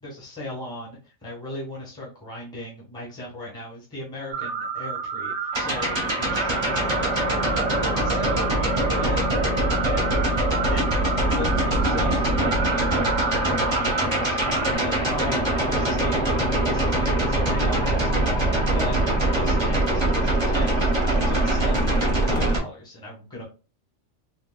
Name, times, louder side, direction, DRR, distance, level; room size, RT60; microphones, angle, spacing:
voice 1, 0.0-9.3 9.8-10.2 10.7-19.0 19.3-20.7 21.1-23.4, left 1 dB, 5° left, -4 dB, 1.0 m, -37 dB
sound 1, 4.3-14.7, right 5 dB, 65° right, 0.8 m, -31 dB
sound 2, 5.5-22.6, right 1 dB, 25° right, 0.7 m, -23 dB
3.8 x 2.5 x 2.2 m, 0.33 s
omnidirectional pair, 1.4 m